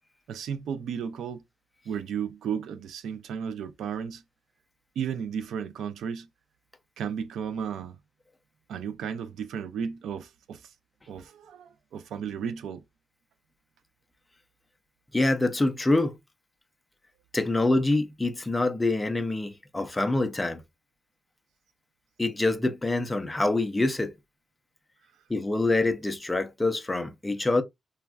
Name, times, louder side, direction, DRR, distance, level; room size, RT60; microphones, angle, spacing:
voice 1, 0.3-1.4 1.9-4.2 5.0-6.3 7.0-8.0 8.7-10.7 11.1-12.8, right 7 dB, 80° right, 0.3 m, -34 dB
voice 2, 15.1-16.2 17.3-20.6 22.2-24.1 25.3-27.6, left 2 dB, 10° left, 0.3 m, -25 dB
3.3 x 2.1 x 2.2 m
wide cardioid pair, 175°, 0 cm